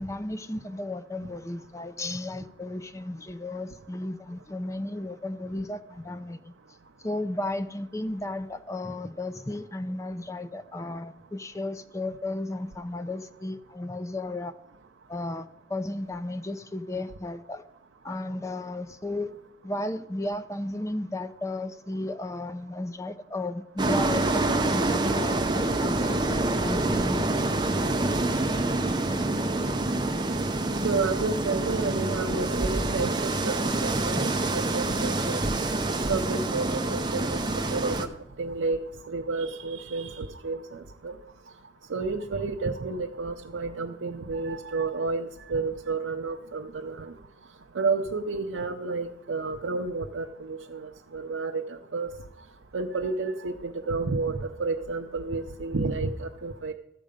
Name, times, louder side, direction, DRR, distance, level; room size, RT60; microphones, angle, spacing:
voice 1, 0.0-6.5 7.0-14.5 15.1-17.6 18.0-19.3 19.6-26.2 26.5-27.4 34.1-34.3, left 2 dB, 15° left, 10 dB, 0.5 m, -34 dB
sound 1, 23.8-38.0, right 2 dB, 20° right, 0.7 m, -26 dB
voice 2, 30.8-35.4 36.1-38.1 38.4-38.8 39.1-41.1 41.9-47.1 47.7-52.1 52.7-56.7, right 4 dB, 80° right, 3 dB, 0.6 m, -31 dB
13.5 x 7.5 x 5.1 m, 0.87 s
head